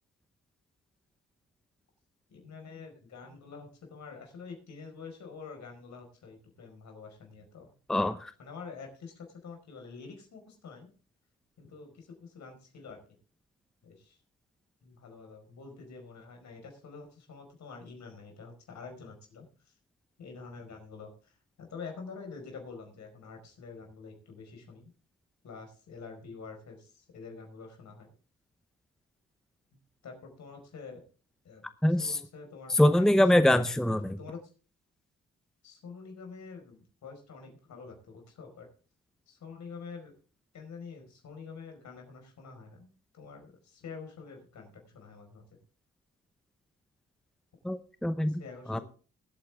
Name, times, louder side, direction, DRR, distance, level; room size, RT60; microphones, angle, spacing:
voice 1, 2.3-7.8 8.4-10.9 11.6-13.0 13.8-14.2 14.8-19.7 20.2-21.3 21.6-24.9 25.4-28.1 30.0-31.0 31.4-33.6 34.0-34.4 35.6-38.7 39.3-40.1 40.5-45.4 48.3-48.8, left 5 dB, 70° left, 3 dB, 5.1 m, -47 dB
voice 2, 7.9-8.3 31.8-32.2 32.7-34.2 47.6-48.4 48.7-48.8, left 1 dB, ahead, 12 dB, 0.8 m, -24 dB
20.5 x 8.8 x 3.5 m, 0.38 s
supercardioid pair, 60°, 29 cm